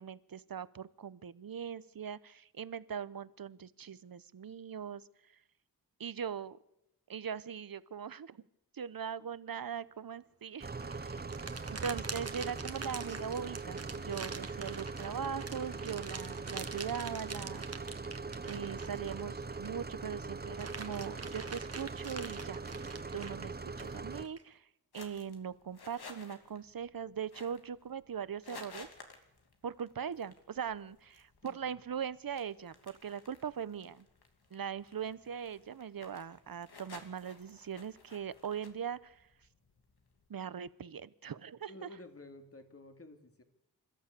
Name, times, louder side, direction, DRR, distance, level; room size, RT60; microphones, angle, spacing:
voice 1, 0.0-5.0 6.0-6.6 7.1-8.4 8.7-10.7 11.0-11.2 11.7-17.6 18.5-22.6 23.1-24.6 24.9-28.9 29.6-34.1 34.5-39.2 40.3-41.9, right 7 dB, 65° right, 17 dB, 0.9 m, -40 dB
sound 1, 10.6-24.3, right 4 dB, 25° right, 0.8 m, -41 dB
sound 2, 10.6-19.9 20.2-24.4, right 4 dB, 40° right, 1.5 m, -45 dB
sound 3, 24.9-40.3, left 3 dB, 85° left, 2.7 m, -56 dB
voice 2, 31.4-31.8 41.7-43.4, left 2 dB, 40° left, 6 dB, 2.4 m, -52 dB
27.0 x 14.0 x 8.4 m, 0.84 s
wide cardioid pair, 100°, 37 cm